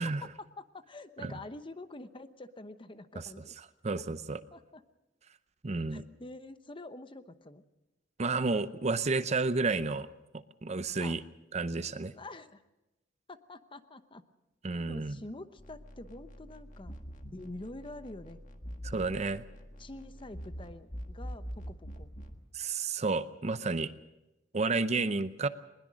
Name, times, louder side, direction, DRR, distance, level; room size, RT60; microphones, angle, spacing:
voice 1, 0.0-3.5 4.0-4.1 4.5-4.8 5.9-7.6 11.0-11.2 12.1-12.6 13.3-14.2 14.9-16.9 17.3-18.4 18.8-19.2 19.8-22.1, left 2 dB, 30° left, 11 dB, 0.9 m, -46 dB
voice 2, 3.8-4.4 5.6-6.0 8.2-10.1 10.6-11.2 11.5-12.1 14.6-15.2 18.8-19.4 22.5-23.9 24.5-25.5, right 3 dB, 35° right, 13 dB, 0.7 m, -31 dB
sound 1, 15.6-22.4, equal, 45° left, 1.7 m, -44 dB
21.0 x 20.5 x 6.3 m, 0.97 s
head